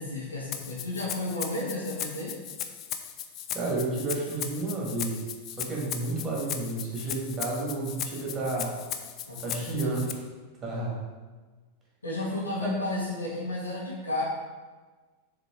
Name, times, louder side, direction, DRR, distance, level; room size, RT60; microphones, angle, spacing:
voice 1, 0.0-2.3 9.3-9.9 12.0-14.2, left 2 dB, 80° left, -6 dB, 2.1 m, -32 dB
Rattle (instrument), 0.5-10.1, left 9 dB, 35° left, 0.5 m, -37 dB
voice 2, 3.5-5.2 5.6-8.8 9.4-10.2 10.6-11.0 12.6-12.7, right 2 dB, 20° right, -3 dB, 2.0 m, -31 dB
6.8 x 3.8 x 4.5 m, 1.4 s
figure-of-eight pair, 90°, 0 cm